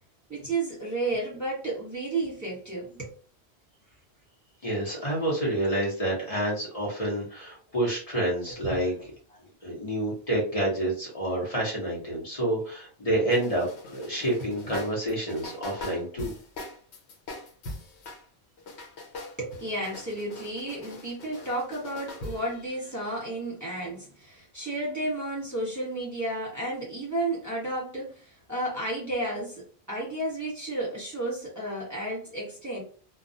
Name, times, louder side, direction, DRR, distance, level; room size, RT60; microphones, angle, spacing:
voice 1, 0.3-3.1 8.7-8.9 19.4-32.8, right 2 dB, 15° right, 1.1 m, -32 dB
voice 2, 4.6-9.1 9.6-16.3, right 1 dB, 35° left, 1.0 m, -28 dB
sound 1, 13.3-18.2 18.6-23.2, left 2 dB, 85° left, 1.0 m, -42 dB
2.3 x 2.2 x 2.6 m
omnidirectional pair, 1.1 m